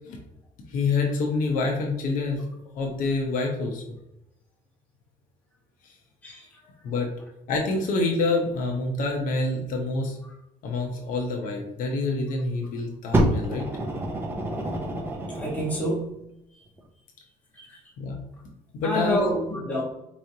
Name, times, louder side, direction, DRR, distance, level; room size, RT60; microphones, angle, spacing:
voice 1, 0.7-2.5 2.7-3.8 6.8-7.1 7.5-10.2 10.6-13.7 16.5-16.6 18.0-18.2 18.7-19.3, left 3 dB, 65° left, 1 dB, 0.8 m, -27 dB
Fire, 13.1-16.0 16.8-16.9, right 1 dB, 15° right, 0.6 m, -27 dB
voice 2, 15.3-16.2 17.7-17.8 18.8-19.8, left 1 dB, 10° left, -5 dB, 1.3 m, -28 dB
4.8 x 3.1 x 2.7 m, 0.85 s
cardioid pair, 160°, 15 cm